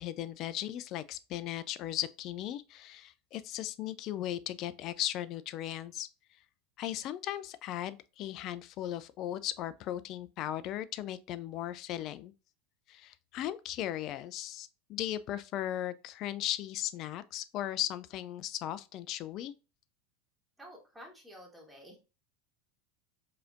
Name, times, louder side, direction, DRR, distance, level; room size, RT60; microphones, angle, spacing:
voice 1, 0.0-6.1 6.8-12.3 12.9-19.5, left 12 dB, 50° left, 0.3 m, -37 dB
voice 2, 20.6-22.0, equal, 5° right, 1.7 m, -51 dB
4.7 x 2.8 x 2.4 m
hypercardioid pair, 90°, 0 cm